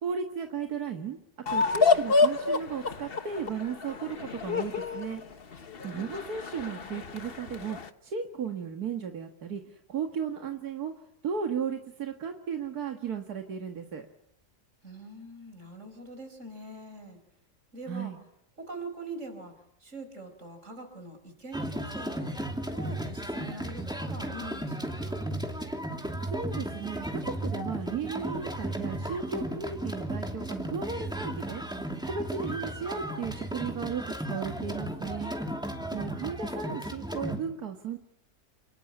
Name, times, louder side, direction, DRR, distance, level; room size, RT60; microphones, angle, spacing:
voice 1, 0.0-1.2 1.5-5.2 5.8-10.9 11.2-14.1 17.9-18.2 26.3-31.6 32.0-35.4 35.9-38.0, right 6 dB, 90° right, 4 dB, 2.2 m, -35 dB
sound 1, 1.5-7.9, left 4 dB, 40° left, 1.3 m, -28 dB
voice 2, 14.8-17.2 17.7-18.1 18.6-22.4 22.7-25.2 35.7-36.2, right 2 dB, 55° right, 7 dB, 5.6 m, -43 dB
sound 2, 21.5-37.4, right 1 dB, 5° right, 2.7 m, -35 dB
28.0 x 20.5 x 9.9 m, 0.78 s
omnidirectional pair, 1.6 m